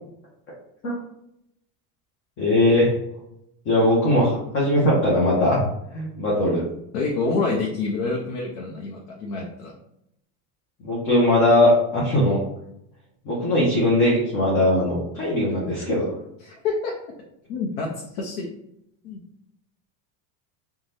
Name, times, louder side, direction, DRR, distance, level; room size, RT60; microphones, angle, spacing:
voice 1, 2.4-2.9 3.7-5.7 5.9-6.6 10.8-12.4 13.3-16.1, left 1 dB, 30° left, -5 dB, 0.5 m, -20 dB
voice 2, 6.9-9.7 16.4-16.9 17.5-18.5 19.0-19.2, left 3 dB, 75° left, -1 dB, 0.7 m, -27 dB
2.6 x 2.2 x 3.2 m, 0.79 s
cardioid pair, 170°, 47 cm